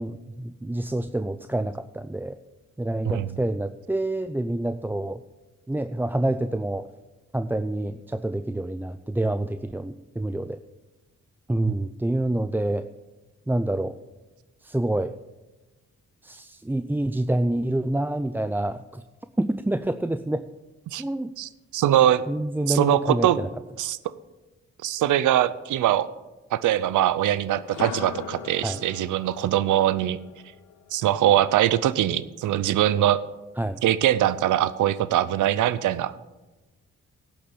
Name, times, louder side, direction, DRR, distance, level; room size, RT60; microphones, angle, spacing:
voice 1, 0.0-2.4 2.8-5.2 5.7-6.9 7.3-10.6 11.5-12.8 13.5-14.0 14.6-15.1 16.2-19.0 19.4-20.4 21.0-21.3 22.3-23.5 28.6-28.8 33.6-33.8, right 1 dB, 5° right, 10 dB, 0.4 m, -27 dB
voice 2, 21.4-22.2 22.7-23.4 23.8-24.0 24.8-26.1 26.5-30.2 30.9-33.2 33.8-36.1, right 12 dB, 85° right, 16 dB, 0.6 m, -22 dB
sound 1, 27.6-31.6, left 10 dB, 85° left, 0.7 m, -40 dB
11.5 x 7.0 x 7.1 m, 1.1 s
cardioid pair, 55°, 30 cm